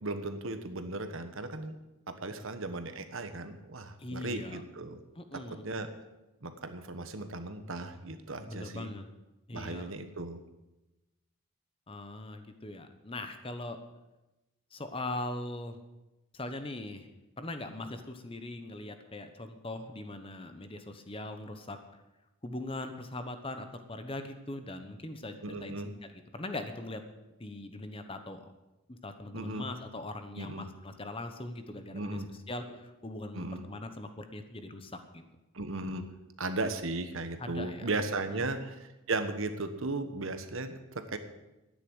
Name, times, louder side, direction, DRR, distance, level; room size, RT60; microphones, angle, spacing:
voice 1, 0.0-1.8 2.1-5.0 5.3-5.9 6.4-8.9 9.5-10.4 25.4-25.9 29.3-29.7 30.4-30.7 31.9-32.3 32.6-32.7 33.3-33.6 35.5-36.0 36.4-41.2, right 2 dB, 60° right, 9 dB, 1.2 m, -36 dB
voice 2, 4.0-4.6 5.1-5.6 8.5-9.0 9.5-9.9 11.9-13.8 14.7-15.8 16.3-17.1 17.4-21.8 22.4-27.0 27.4-28.5 28.9-35.2 37.4-37.9 38.3-38.4, left 2 dB, 25° left, 8 dB, 1.0 m, -41 dB
12.0 x 9.9 x 7.9 m, 1.0 s
head